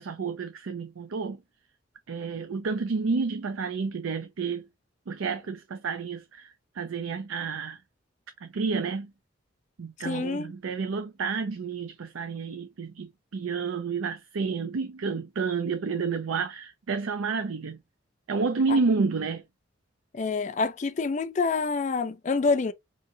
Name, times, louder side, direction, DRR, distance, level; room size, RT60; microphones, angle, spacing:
voice 1, 0.0-1.4 2.1-4.7 5.1-7.8 8.4-9.1 9.8-17.8 18.3-19.4, right 4 dB, 85° right, 0.5 m, -30 dB
voice 2, 10.0-10.5 18.7-18.8 20.1-22.7, left 4 dB, 35° left, 0.3 m, -27 dB
4.8 x 2.7 x 2.6 m
head